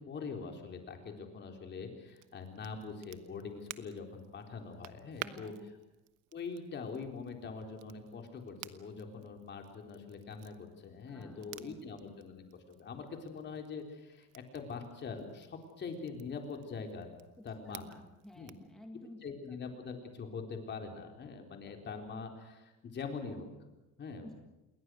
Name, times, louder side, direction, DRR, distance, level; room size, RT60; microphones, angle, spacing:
voice 1, 0.0-5.5 6.3-17.1 17.4-17.9 18.4-18.6 19.2-23.5 24.0-24.3, left 5 dB, 35° left, 3 dB, 4.0 m, -43 dB
Crackle, 2.1-18.7, right 16 dB, 90° right, 1.2 m, -54 dB
voice 2, 5.1-5.8 11.1-11.8 17.4-19.2 24.2-24.3, left 1 dB, ahead, 2 dB, 1.8 m, -53 dB
28.5 x 21.5 x 6.4 m, 0.99 s
cardioid pair, 160°, 31 cm